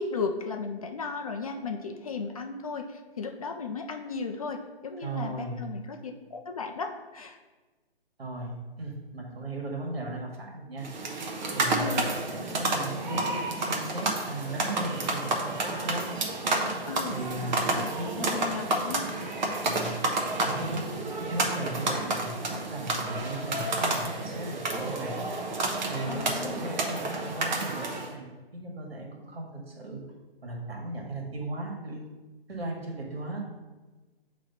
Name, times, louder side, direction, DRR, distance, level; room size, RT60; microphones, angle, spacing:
voice 1, 0.0-7.4 11.8-12.0 16.9-17.2 17.7-19.3 19.8-20.0 26.1-26.7, left 4 dB, 35° left, 4 dB, 0.4 m, -35 dB
voice 2, 5.0-5.7 8.2-10.9 11.5-16.2 17.1-18.3 19.6-19.9 20.4-20.8 21.2-25.2 25.9-30.0 30.4-32.1 32.5-33.5, right 2 dB, 75° right, 0 dB, 1.7 m, -37 dB
sound 1, 10.8-28.1, right 2 dB, 45° right, 1.0 m, -30 dB
7.6 x 3.1 x 4.1 m, 1.2 s
figure-of-eight pair, 145°, 31 cm